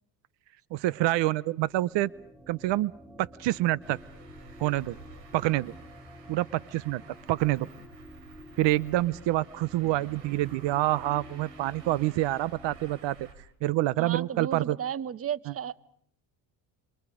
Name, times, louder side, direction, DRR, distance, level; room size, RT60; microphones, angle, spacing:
voice 1, 0.7-2.1 2.5-2.9 3.2-4.0 4.6-5.0 5.3-5.7 6.3-7.0 7.3-7.7 8.6-13.3 13.6-14.8, right 16 dB, 65° right, 21 dB, 0.9 m, -27 dB
sound 1, 1.4-12.9, equal, 5° right, 6.8 m, -50 dB
Traffic noise roadway noise, 3.8-13.3, right 4 dB, 90° right, 6.1 m, -52 dB
voice 2, 14.0-15.7, right 9 dB, 30° right, 21 dB, 0.9 m, -34 dB
29.0 x 27.5 x 5.1 m, 0.66 s
supercardioid pair, 75°, 47 cm